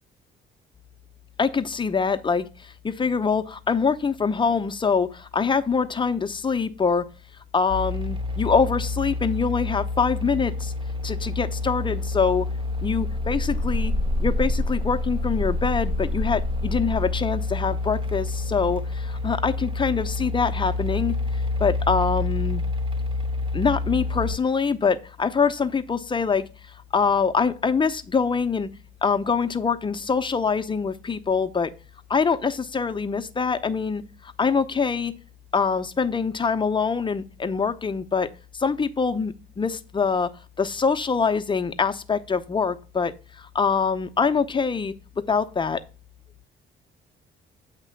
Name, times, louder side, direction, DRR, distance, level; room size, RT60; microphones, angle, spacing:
voice 1, 1.4-7.1 7.5-10.7 11.0-12.5 12.8-13.9 14.2-21.2 21.6-22.6 23.5-26.5 26.9-28.7 29.0-31.7 32.1-35.1 35.5-38.3 38.5-40.3 40.6-44.9 45.3-45.8, left 5 dB, 25° left, 8 dB, 0.7 m, -24 dB
sound 1, 7.7-24.4, left 2 dB, 25° right, 0.7 m, -27 dB
8.2 x 3.0 x 5.8 m, 0.34 s
cardioid pair, 90°, 20 cm